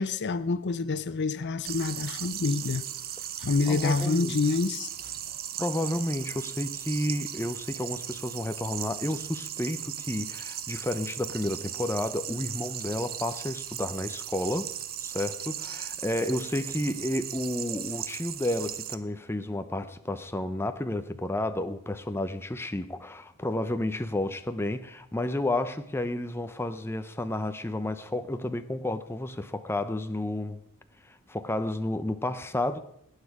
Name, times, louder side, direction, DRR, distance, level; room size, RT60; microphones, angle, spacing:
voice 1, 0.0-2.8 3.4-4.9, left 4 dB, 55° left, 0.6 m, -27 dB
sound 1, 1.7-18.9, right 10 dB, 45° right, 0.8 m, -37 dB
voice 2, 3.7-4.4 5.6-14.7 15.0-30.6 31.1-32.8, left 1 dB, 10° left, 0.7 m, -31 dB
18.0 x 9.4 x 4.9 m
head